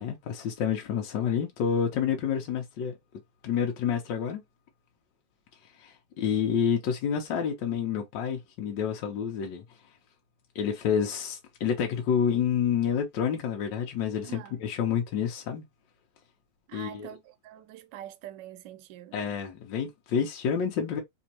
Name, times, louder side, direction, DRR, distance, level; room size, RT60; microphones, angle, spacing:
voice 1, 0.0-2.9 3.4-4.4 5.8-9.6 10.5-15.6 16.7-17.1 19.1-21.0, left 7 dB, 75° left, 1.4 m, -28 dB
voice 2, 14.2-14.6 16.7-19.2, right 13 dB, 75° right, 1.2 m, -45 dB
4.2 x 2.6 x 2.8 m
omnidirectional pair, 2.0 m